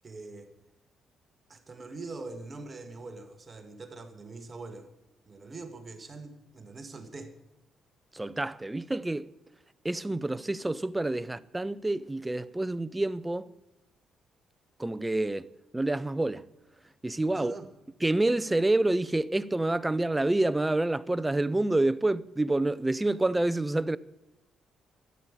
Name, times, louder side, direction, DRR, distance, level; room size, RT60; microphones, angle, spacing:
voice 1, 0.0-0.5 1.5-4.9 5.3-7.3 17.3-17.7, right 3 dB, 30° right, 1.7 m, -43 dB
voice 2, 8.1-9.3 9.8-13.5 14.8-15.5 15.7-16.5 17.0-17.5 18.0-24.0, right 2 dB, 15° right, 0.6 m, -28 dB
13.5 x 8.7 x 9.6 m
cardioid pair, 90°, 0 cm